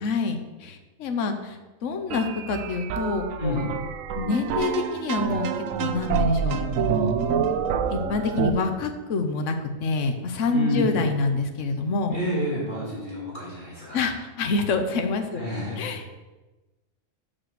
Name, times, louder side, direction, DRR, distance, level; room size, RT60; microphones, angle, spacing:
voice 1, 0.0-1.6 1.8-3.7 4.1-7.3 7.9-12.2 13.9-15.4 15.8-16.2, left 4 dB, 70° left, 5 dB, 1.2 m, -27 dB
sound 1, 2.1-8.5, right 6 dB, 85° right, 1.0 m, -27 dB
voice 2, 3.4-3.7 10.5-11.0 12.1-14.1 15.3-15.9, equal, 35° left, -7 dB, 3.0 m, -29 dB
sound 2, 4.3-8.6, right 8 dB, 60° right, 0.7 m, -36 dB
6.4 x 5.9 x 6.5 m, 1.1 s
omnidirectional pair, 1.4 m